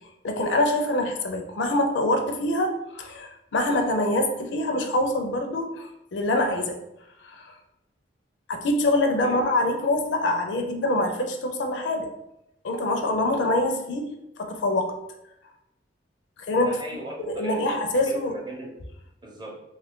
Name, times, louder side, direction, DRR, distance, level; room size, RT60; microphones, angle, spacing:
voice 1, 0.2-6.8 7.2-7.5 8.5-12.1 12.6-14.1 14.4-14.9 16.5-16.8 17.2-18.4, left 1 dB, 70° left, 4 dB, 0.5 m, -25 dB
voice 2, 16.6-17.8 18.1-18.7 19.2-19.6, right 1 dB, 25° right, -1 dB, 0.6 m, -38 dB
2.8 x 2.4 x 3.6 m, 0.85 s
head